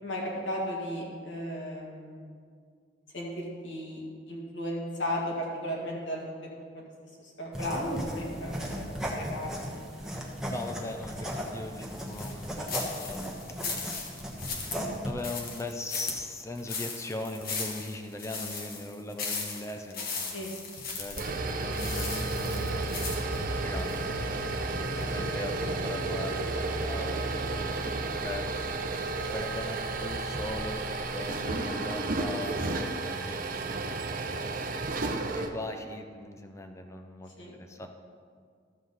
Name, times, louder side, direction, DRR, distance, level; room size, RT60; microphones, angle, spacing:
voice 1, 0.0-2.3 3.1-6.2 6.7-6.8 7.2-8.8 9.1-9.8 20.3-20.5 31.4-31.7 37.4-37.5, equal, 70° left, -4 dB, 2.1 m, -35 dB
sound 1, 7.5-15.1, equal, 5° right, 1.1 m, -36 dB
voice 2, 10.5-13.2 15.0-20.6 21.0-24.0 24.7-26.3 26.8-27.7 28.1-28.5 29.3-30.8 31.1-33.9 35.3-37.9, left 2 dB, 15° left, 5 dB, 0.5 m, -40 dB
sound 2, 12.0-24.0 24.5-24.6 25.0-25.1, left 4 dB, 55° left, 1.4 m, -37 dB
sound 3, 21.0-35.5, right 3 dB, 50° right, 0.7 m, -32 dB
13.0 x 7.2 x 4.0 m, 2.1 s
head